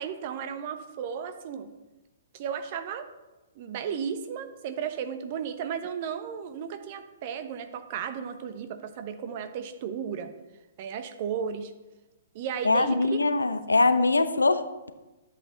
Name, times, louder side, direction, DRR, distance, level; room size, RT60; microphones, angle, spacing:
voice 1, 0.0-1.7 2.3-3.1 3.6-10.3 10.8-11.7 12.3-13.2, right 7 dB, 45° right, 9 dB, 1.0 m, -34 dB
voice 2, 12.6-14.9, left 3 dB, 85° left, 10 dB, 0.7 m, -23 dB
11.0 x 7.7 x 3.9 m, 1.1 s
figure-of-eight pair, 120°, 0 cm